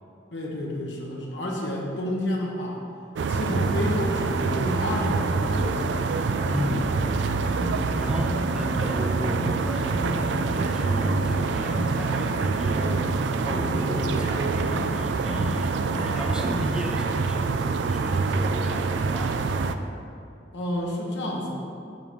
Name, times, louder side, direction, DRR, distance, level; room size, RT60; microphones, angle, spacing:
voice 1, 0.3-2.8 3.3-6.0 7.8-8.1 13.8-14.2 20.5-21.5, left 1 dB, 75° left, -1 dB, 1.3 m, -30 dB
sound 1, 3.2-19.7, right 4 dB, 75° right, 0.4 m, -26 dB
sound 2, 6.3-7.8 8.1-9.6 9.9-13.2 13.4-15.0 15.2-16.7, equal, 45° right, 0.9 m, -34 dB
voice 2, 6.5-6.9 7.2-7.5 8.0-13.0 13.4-19.5, equal, 5° right, 1 dB, 0.5 m, -35 dB
9.2 x 3.7 x 5.8 m, 2.5 s
head